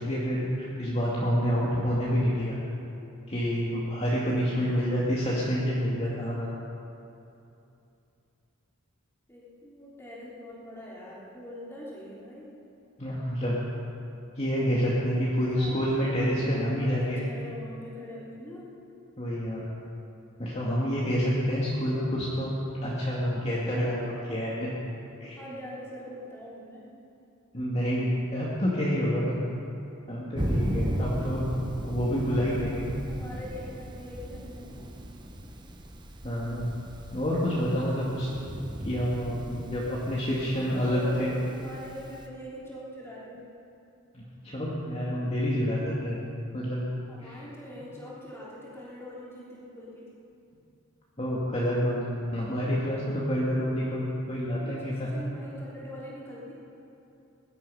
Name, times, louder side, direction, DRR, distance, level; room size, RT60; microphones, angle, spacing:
voice 1, 0.0-2.6 3.3-6.5 13.0-13.6 14.4-17.2 19.2-19.7 20.4-22.5 22.8-24.7 25.2-25.4 27.5-29.4 30.1-31.5 31.8-32.9 36.2-36.7 37.1-38.3 38.8-41.3 44.1-46.2 46.5-46.8 47.2-47.4 51.2-52.0 52.3-55.1, equal, 30° left, -7 dB, 2.1 m, -28 dB
voice 2, 9.3-12.6 15.3-16.2 16.7-18.8 24.1-24.4 25.4-27.0 32.3-34.7 40.2-43.5 47.1-50.1 54.5-56.5, left 1 dB, 10° left, -7 dB, 3.6 m, -43 dB
Thunder, 30.4-42.3, equal, 20° right, 1.1 m, -35 dB
20.0 x 12.0 x 5.6 m, 2.7 s
head